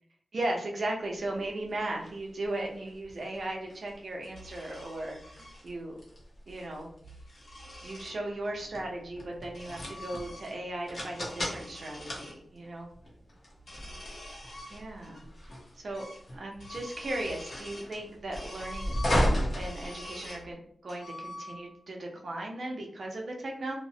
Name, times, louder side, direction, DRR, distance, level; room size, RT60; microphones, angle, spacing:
voice 1, 0.3-6.0 6.5-6.9 7.8-12.9 14.7-15.2 15.7-16.1 16.3-19.0 19.5-23.7, right 1 dB, 55° right, 0 dB, 0.6 m, -37 dB
sound 1, 1.2-20.5, equal, 45° left, 0.8 m, -36 dB
sound 2, 4.3-5.6 6.8-8.2 9.1-10.7 11.0-12.4 13.6-15.2 15.5-15.6 15.9-16.3 16.5-17.9 18.3-20.5 20.9-21.8, left 1 dB, 85° left, 1.4 m, -46 dB
2.8 x 2.0 x 2.7 m, 0.63 s
wide cardioid pair, 135°, 0 cm